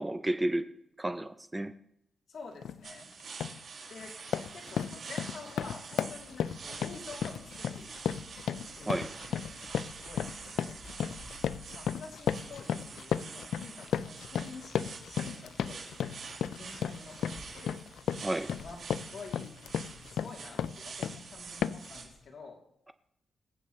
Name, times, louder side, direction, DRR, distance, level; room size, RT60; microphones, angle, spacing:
voice 1, 0.0-1.7 8.9-9.2 18.2-18.5, right 1 dB, 10° right, 0.5 m, -32 dB
voice 2, 2.3-3.1 3.9-4.2 4.5-8.2 8.8-9.4 9.9-10.7 11.7-15.8 16.6-17.8 18.6-18.8 19.1-19.5 20.1-22.6, left 4 dB, 60° left, 3.0 m, -48 dB
sound 1, 2.6-2.8 3.2-3.6 4.0-21.2 21.6-22.0, left 8 dB, 85° left, 0.4 m, -35 dB
sound 2, 2.8-22.0, right 5 dB, 60° right, 5.4 m, -47 dB
sound 3, 6.1-22.3, left 2 dB, 40° left, 2.1 m, -57 dB
25.5 x 8.5 x 3.2 m
wide cardioid pair, 125°, 0 cm